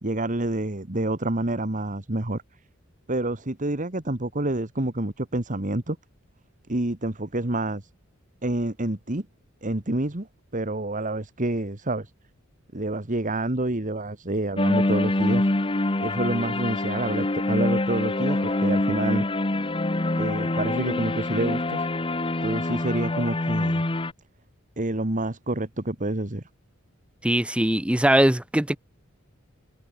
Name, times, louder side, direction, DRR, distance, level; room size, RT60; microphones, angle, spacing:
voice 1, 0.0-2.4 3.1-6.0 6.7-7.9 8.4-9.3 9.6-12.1 12.7-15.5 16.0-19.2 20.2-21.8 22.4-23.8 24.8-26.4, right 2 dB, 40° right, 1.8 m, -28 dB
sound 1, 14.6-24.1, left 2 dB, 25° left, 1.1 m, -25 dB
voice 2, 27.2-28.8, right 1 dB, 5° right, 0.6 m, -21 dB
head